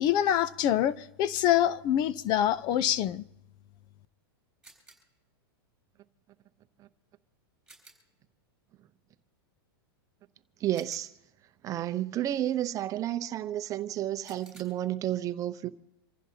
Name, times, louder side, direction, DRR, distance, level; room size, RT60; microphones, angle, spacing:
voice 1, 0.0-3.2, left 11 dB, 35° left, 0.6 m, -25 dB
sound 1, 4.6-5.2 7.7-8.2 10.7-11.4 14.2-14.6, right 2 dB, 5° right, 6.8 m, -56 dB
voice 2, 10.6-11.1 11.6-15.7, right 12 dB, 25° right, 0.8 m, -31 dB
27.5 x 15.0 x 2.9 m
supercardioid pair, 140°, 13 cm